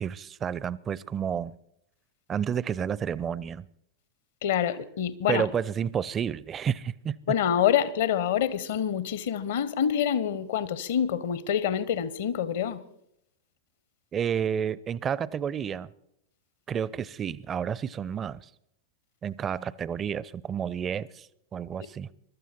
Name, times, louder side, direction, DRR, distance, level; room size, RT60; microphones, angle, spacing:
voice 1, 0.0-1.5 2.3-3.7 5.3-7.2 14.1-15.9 16.7-18.5 19.2-21.3 21.5-22.1, right 8 dB, 25° right, 0.5 m, -30 dB
voice 2, 4.4-5.5 7.3-12.8, left 9 dB, 55° left, 0.9 m, -26 dB
22.0 x 12.5 x 4.3 m
figure-of-eight pair, 90°, 0 cm